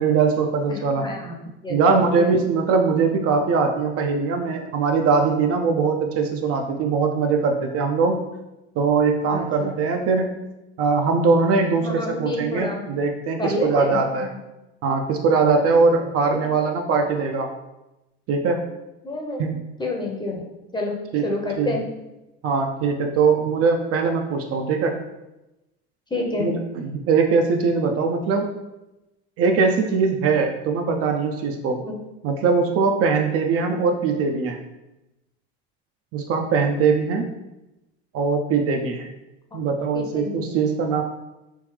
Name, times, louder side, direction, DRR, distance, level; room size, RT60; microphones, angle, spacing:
voice 1, 0.0-1.1 1.7-8.3 8.8-10.5 10.8-14.3 14.8-17.5 18.3-18.6 19.4-19.6 21.1-21.3 21.6-21.8 22.4-25.0 26.4-28.5 29.4-31.8 32.2-34.6 36.1-37.3 38.1-39.1 39.5-41.0, right 4 dB, 45° right, 3 dB, 0.5 m, -21 dB
voice 2, 0.7-1.8 2.2-2.3 9.3-9.7 11.8-12.9 13.4-14.4 15.8-15.9 16.3-16.4 19.0-19.5 19.8-20.5 20.7-21.0 21.2-21.8 26.1-26.5 31.8-32.0 39.9-40.5, left 2 dB, 15° left, 0 dB, 0.7 m, -29 dB
3.4 x 2.7 x 3.2 m, 0.98 s
supercardioid pair, 90°, 32 cm